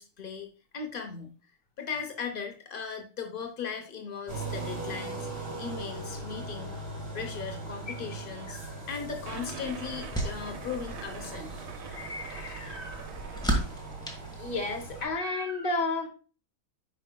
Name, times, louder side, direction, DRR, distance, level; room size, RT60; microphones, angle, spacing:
voice 1, 0.0-1.3 1.8-6.7 7.1-8.6 8.9-11.6, left 6 dB, 85° left, 0.4 m, -38 dB
sound 1, 4.3-15.0, right 2 dB, 20° right, 4.0 m, -40 dB
sound 2, 9.0-15.2, right 1 dB, 5° left, 1.1 m, -36 dB
sound 3, 9.2-14.2, right 7 dB, 80° right, 1.7 m, -45 dB
voice 2, 11.9-13.1 14.4-16.1, left 2 dB, 45° left, 0.7 m, -33 dB
9.6 x 5.0 x 2.2 m
omnidirectional pair, 2.2 m